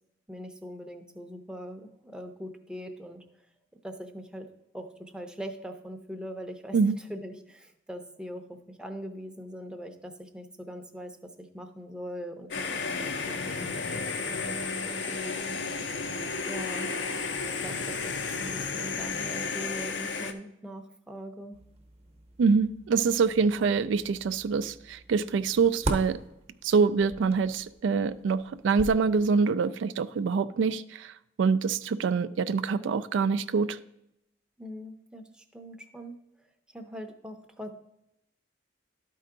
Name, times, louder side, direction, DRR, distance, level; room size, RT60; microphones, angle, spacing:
voice 1, 0.3-3.2 3.8-4.5 4.7-15.6 15.8-16.0 16.4-17.3 17.6-18.1 18.4-21.6 34.6-36.2 36.7-37.7, equal, 5° right, 4 dB, 0.6 m, -41 dB
sound 1, 12.5-20.3, left 4 dB, 75° left, 0.7 m, -33 dB
sound 2, 21.5-29.4, right 1 dB, 35° right, 0.9 m, -41 dB
voice 2, 22.4-26.2 26.6-31.1 31.4-33.8, right 5 dB, 85° right, 13 dB, 0.3 m, -25 dB
12.0 x 4.6 x 3.8 m, 0.83 s
head